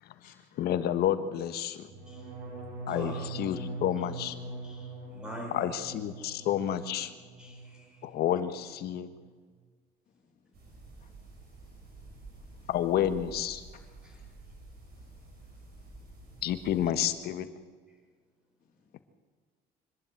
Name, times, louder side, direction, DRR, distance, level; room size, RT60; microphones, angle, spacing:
voice 1, 0.6-1.9 2.9-4.3 5.5-7.1 8.0-9.1 12.7-13.6 16.4-17.5, left 10 dB, 70° left, 1.5 m, -30 dB
sound 1, 1.9-7.8 8.1-8.6 8.9-9.3, right 3 dB, 85° right, 7.0 m, -42 dB
voice 2, 2.9-3.2 4.6-5.8 7.4-8.0, left 1 dB, 5° right, 6.1 m, -44 dB
voice 3, 10.3-12.7 13.8-14.3 14.8-15.6 15.9-16.2, left 6 dB, 50° left, 3.7 m, -65 dB
sound 2, 10.5-16.9, right 2 dB, 65° right, 7.5 m, -50 dB
25.0 x 12.5 x 9.4 m
cardioid pair, 110°, 17 cm